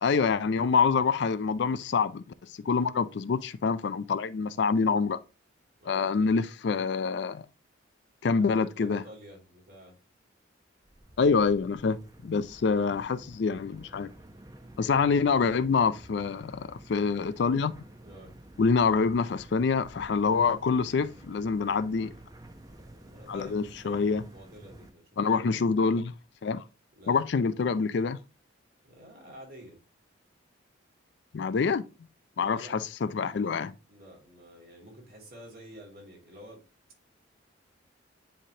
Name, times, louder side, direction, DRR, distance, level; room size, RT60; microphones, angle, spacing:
voice 1, 0.0-2.2 2.6-5.2 5.9-7.4 8.2-9.0 11.2-12.0 12.2-14.1 14.8-17.7 18.6-22.1 23.3-24.2 25.2-26.1 26.4-26.6 27.1-28.2 31.3-31.9 32.4-33.7, left 5 dB, 60° left, 0.4 m, -26 dB
voice 2, 5.8-6.3 8.3-10.0 18.0-18.3 22.9-25.9 27.0-27.3 28.8-29.8 32.3-32.8 33.9-36.6, equal, 50° right, 2.4 m, -49 dB
sound 1, 10.8-24.9, right 1 dB, 20° right, 0.7 m, -51 dB
10.0 x 3.3 x 2.8 m
head